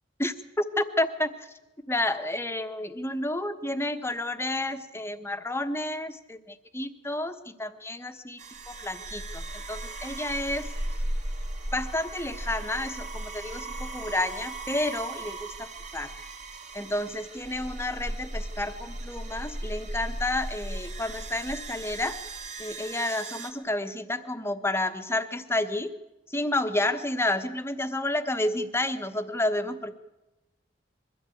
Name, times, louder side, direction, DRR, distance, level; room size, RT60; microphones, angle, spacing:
voice 1, 0.2-1.5 1.9-8.4 8.7-10.7 11.7-16.1 16.7-22.2 22.6-25.9 26.3-29.9, left 1 dB, 15° left, 8 dB, 1.1 m, -30 dB
sound 1, 8.4-23.5, right 1 dB, 40° right, 2.2 m, -37 dB
22.5 x 14.0 x 8.5 m, 1.0 s
head